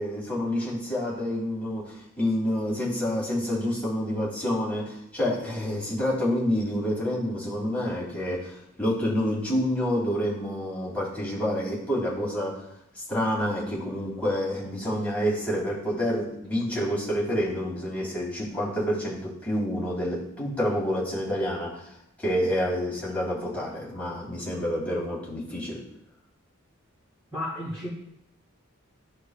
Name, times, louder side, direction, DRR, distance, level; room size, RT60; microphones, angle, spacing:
voice 1, 0.0-12.7 12.9-21.9 22.2-25.8, equal, 5° left, -6 dB, 2.8 m, -28 dB
voice 2, 27.3-27.9, left 1 dB, 20° right, -7 dB, 2.1 m, -32 dB
14.0 x 4.8 x 2.4 m, 0.77 s
head